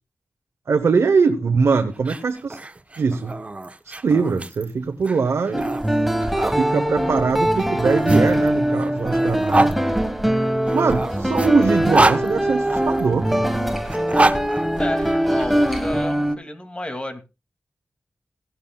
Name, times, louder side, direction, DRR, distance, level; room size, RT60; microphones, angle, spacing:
voice 1, 0.7-2.6 3.0-3.3 3.8-5.8 6.6-9.8 10.7-13.5, right 5 dB, 80° right, 6 dB, 1.0 m, -22 dB
sound 1, 1.9-6.6 7.5-9.7 10.7-13.0 13.8-15.5, right 2 dB, 30° right, 1.1 m, -25 dB
sound 2, 5.5-16.4, right 1 dB, 5° right, 1.5 m, -22 dB
voice 2, 14.8-17.3, left 1 dB, 25° left, 8 dB, 2.5 m, -31 dB
16.5 x 11.5 x 2.4 m, 0.29 s
wide cardioid pair, 75°, 5 cm